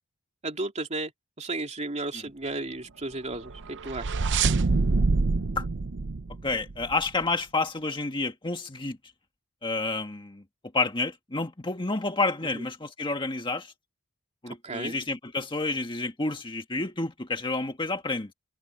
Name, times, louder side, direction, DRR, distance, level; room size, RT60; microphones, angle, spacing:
voice 1, 0.4-1.1 1.4-4.1 12.5-12.6 14.6-15.0, right 2 dB, 30° right, 3.1 m, -33 dB
sound 1, 3.4-7.1, right 3 dB, 55° right, 0.7 m, -26 dB
voice 2, 6.4-9.0 9.6-10.4 10.7-13.7 14.4-18.3, left 3 dB, 20° left, 1.7 m, -29 dB
open air
head